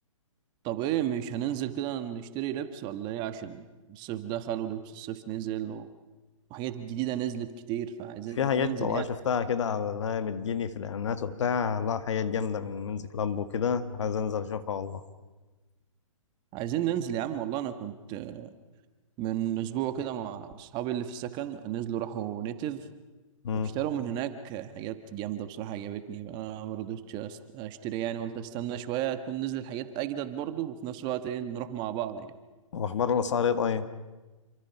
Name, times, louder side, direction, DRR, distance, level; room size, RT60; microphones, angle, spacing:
voice 1, 0.6-5.9 6.5-9.0 16.5-18.5 19.2-22.8 23.5-32.3, right 11 dB, 25° right, 10 dB, 1.5 m, -33 dB
voice 2, 8.4-15.0 23.4-23.7 32.7-33.9, left 7 dB, 60° left, 10 dB, 1.9 m, -29 dB
28.0 x 25.0 x 5.9 m, 1.2 s
hypercardioid pair, 135°, 18 cm